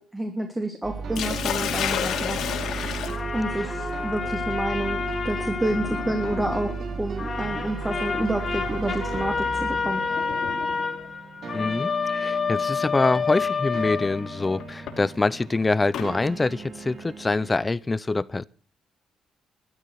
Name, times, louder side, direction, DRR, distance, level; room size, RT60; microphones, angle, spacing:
voice 1, 0.0-2.4 3.3-10.0, right 1 dB, 15° right, 3.1 m, -29 dB
sound 1, 0.8-17.7, right 4 dB, 60° right, 2.8 m, -36 dB
Sink (filling or washing), 1.2-11.1 12.2-12.5 13.0-13.1 14.6-16.1, left 8 dB, 75° left, 2.9 m, -34 dB
sound 2, 3.1-6.8 7.2-14.7, left 5 dB, 35° left, 2.1 m, -29 dB
voice 2, 11.5-18.4, left 3 dB, 20° left, 0.7 m, -25 dB
13.5 x 12.5 x 6.8 m
cardioid pair, 90°, 0 cm